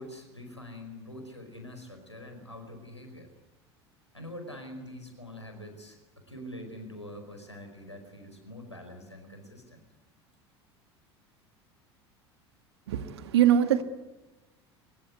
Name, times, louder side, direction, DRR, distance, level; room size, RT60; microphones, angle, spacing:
voice 1, 0.0-3.3 4.1-9.8, left 1 dB, 90° left, 5 dB, 4.9 m, -44 dB
voice 2, 12.9-13.8, right 10 dB, 65° right, 9 dB, 1.9 m, -23 dB
23.5 x 21.5 x 9.5 m, 1.1 s
figure-of-eight pair, 70°, 14 cm